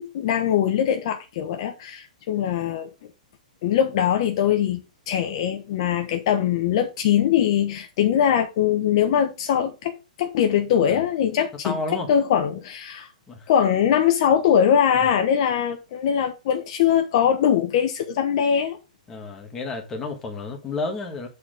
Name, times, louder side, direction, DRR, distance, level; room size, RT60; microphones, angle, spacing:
voice 1, 0.0-2.9 3.6-9.9 10.2-11.7 12.1-13.1 13.5-18.8, left 9 dB, 45° left, 1.0 m, -22 dB
voice 2, 11.6-12.1 12.9-13.5 14.9-15.1 19.1-21.3, left 3 dB, 10° left, 1.5 m, -32 dB
8.4 x 4.3 x 5.1 m
hypercardioid pair, 165°, 4 cm